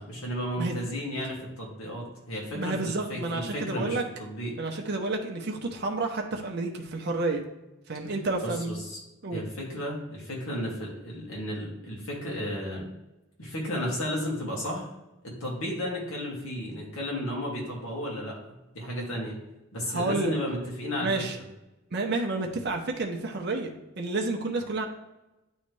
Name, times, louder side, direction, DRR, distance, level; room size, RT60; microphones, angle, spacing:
voice 1, 0.0-4.5 8.4-9.0 9.3-12.9 13.4-14.9 15.2-19.4 19.7-21.4, equal, 80° left, -3 dB, 2.1 m, -33 dB
voice 2, 2.5-4.0 4.6-7.4 7.9-8.8 9.2-9.4 19.9-20.4 21.0-21.4 21.9-23.7 24.0-24.8, right 3 dB, 50° right, 2 dB, 0.7 m, -30 dB
9.3 x 3.2 x 3.2 m, 0.97 s
head